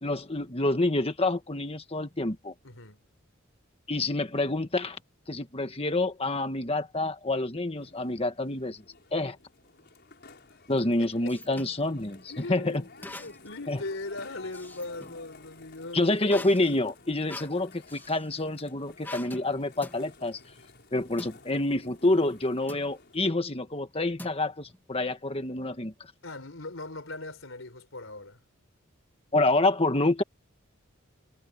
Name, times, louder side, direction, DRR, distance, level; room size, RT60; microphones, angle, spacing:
voice 1, 0.0-2.5 3.9-5.0 5.3-8.8 9.1-9.4 10.7-12.8 13.7-13.8 15.9-20.4 20.9-25.9 29.3-30.2, left 2 dB, 30° left, 1.6 m, -27 dB
voice 2, 2.6-3.0 10.5-10.6 11.0-11.6 12.3-16.5 26.2-28.4, left 2 dB, 65° left, 4.3 m, -40 dB
sound 1, 7.8-23.2, left 3 dB, 50° left, 5.3 m, -53 dB
sound 2, 10.7-11.8 13.0-13.6 14.0-15.2 16.3-18.3 19.0-19.5 19.8-20.0 21.2-21.4 22.7-22.9 24.2-24.8, left 1 dB, 10° left, 2.7 m, -44 dB
head